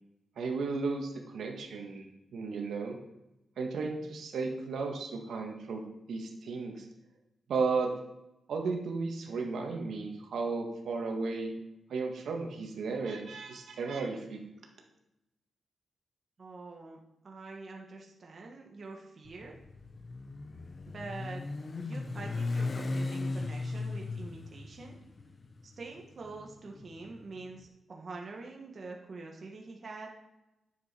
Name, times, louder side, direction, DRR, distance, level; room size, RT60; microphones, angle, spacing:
voice 1, 0.3-3.0 3.6-5.8 6.1-6.9 7.5-7.9 8.5-11.5 11.9-14.4, right 4 dB, 75° right, 2 dB, 1.6 m, -34 dB
voice 2, 16.4-17.0 17.2-19.6 20.9-21.4 21.8-24.9 25.6-30.1, right 3 dB, 40° right, -1 dB, 1.3 m, -45 dB
Motorcycle, 19.3-27.5, left 3 dB, 30° left, 0.6 m, -37 dB
10.0 x 7.3 x 4.4 m, 0.94 s
wide cardioid pair, 135°, 0 cm